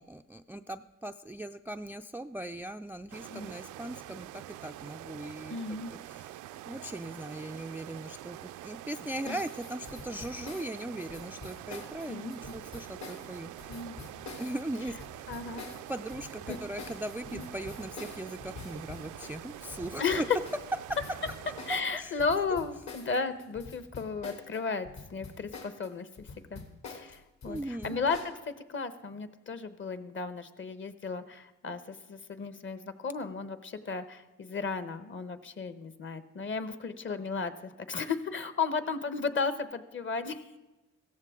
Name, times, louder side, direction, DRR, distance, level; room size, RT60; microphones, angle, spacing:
voice 1, 0.0-5.8 6.1-6.3 6.7-13.8 14.4-15.3 15.9-20.2 21.7-22.2 27.5-28.0, right 1 dB, 5° right, 9 dB, 0.3 m, -39 dB
sound 1, 3.1-21.8, right 14 dB, 80° right, 0.5 m, -45 dB
voice 2, 5.5-5.9 9.3-9.4 12.1-12.5 13.7-14.0 15.3-15.6 16.5-16.6 17.3-17.4 20.0-20.2 21.7-37.5 37.9-40.4, left 4 dB, 40° left, 11 dB, 1.1 m, -34 dB
sound 2, 9.3-24.6 24.8-28.4, left 4 dB, 65° left, 2.6 m, -46 dB
sound 3, 11.6-24.3, left 4 dB, 80° left, 3.6 m, -61 dB
16.0 x 14.0 x 3.7 m, 1.1 s
cardioid pair, 90°, 30 cm